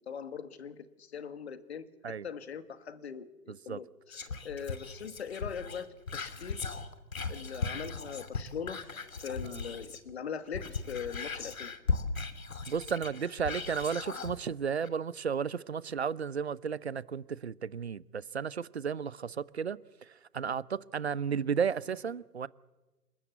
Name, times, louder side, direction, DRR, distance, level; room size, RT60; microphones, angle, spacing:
voice 1, 0.0-1.9 2.2-6.7 7.3-8.8 9.2-11.7, left 7 dB, 40° left, 2.0 m, -41 dB
voice 2, 3.5-3.8 9.4-9.6 12.7-22.5, right 6 dB, 40° right, 0.8 m, -33 dB
Whispering, 4.1-10.1 10.4-14.4 14.8-14.9, left 4 dB, 55° left, 2.9 m, -37 dB
29.0 x 19.5 x 8.2 m
figure-of-eight pair, 145°, 47 cm